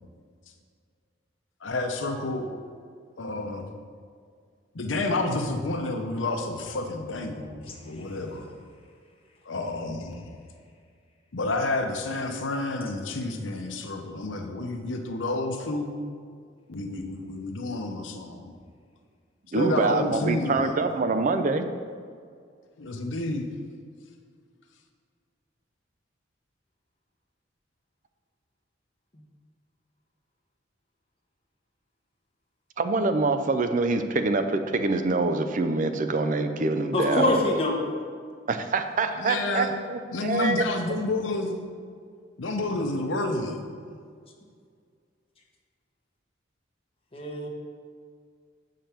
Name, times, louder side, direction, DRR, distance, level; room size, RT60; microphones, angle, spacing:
voice 1, 1.6-2.5 3.2-3.7 4.7-8.5 9.4-10.3 11.3-15.9 16.7-18.5 19.5-20.8 22.8-23.5 39.2-39.7 40.1-41.5 42.4-43.6 43.9-44.0, left 2 dB, 80° left, 4 dB, 0.8 m, -30 dB
voice 2, 19.5-21.7 32.8-37.4 38.5-40.6, right 3 dB, 45° right, 8 dB, 0.5 m, -25 dB
voice 3, 36.9-37.8 47.1-47.5, left 1 dB, 30° left, -1 dB, 1.2 m, -24 dB
7.4 x 5.2 x 5.8 m, 2.1 s
head